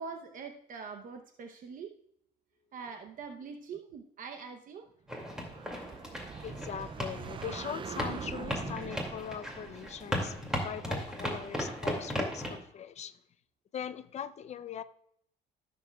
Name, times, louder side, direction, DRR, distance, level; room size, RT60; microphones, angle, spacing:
voice 1, 0.0-1.9 2.7-4.9, right 5 dB, 55° right, 0.8 m, -43 dB
sound 1, 5.1-12.6, equal, 5° right, 2.3 m, -37 dB
sound 2, 5.3-11.9, right 6 dB, 30° right, 0.4 m, -44 dB
voice 2, 6.4-13.1 13.7-14.8, left 8 dB, 40° left, 0.6 m, -41 dB
15.0 x 7.0 x 2.3 m
cardioid pair, 110°, 17 cm